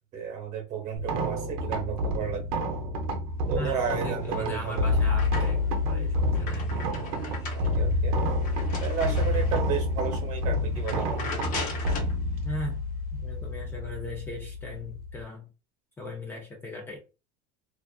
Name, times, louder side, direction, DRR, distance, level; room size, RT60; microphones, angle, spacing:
voice 1, 0.1-2.6 3.5-5.0 7.5-8.2 8.8-11.1, right 7 dB, 40° right, 1.0 m, -32 dB
sound 1, 1.0-15.2, left 1 dB, 80° right, 0.7 m, -28 dB
voice 2, 3.5-7.2 12.4-12.8 13.1-15.5 16.0-17.0, left 1 dB, 10° left, 0.4 m, -38 dB
sound 2, 4.2-5.8 6.2-9.8 10.2-10.4 10.7-12.2, left 4 dB, 45° left, 0.8 m, -39 dB
2.5 x 2.4 x 2.3 m
cardioid pair, 155°, 19 cm